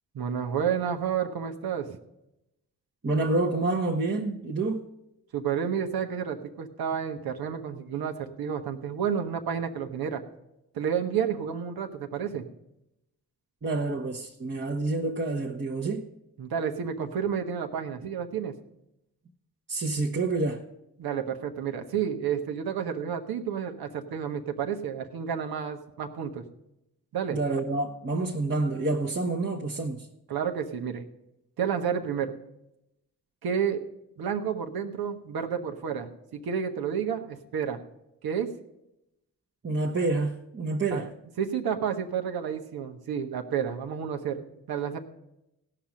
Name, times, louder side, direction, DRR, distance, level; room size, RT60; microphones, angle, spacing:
voice 1, 0.1-2.0 5.3-10.2 10.7-12.4 16.4-18.5 21.0-26.4 27.1-27.4 30.3-31.0 31.6-32.3 33.4-33.8 34.2-37.8 38.2-38.5 40.9-41.1 41.4-44.4 44.7-45.0, right 7 dB, 60° right, 1.3 m, -30 dB
voice 2, 3.0-4.9 13.6-16.1 19.7-20.6 27.3-30.1 39.6-41.1, right 3 dB, 30° right, 1.3 m, -28 dB
16.5 x 5.9 x 5.2 m
hypercardioid pair, 45°, 41 cm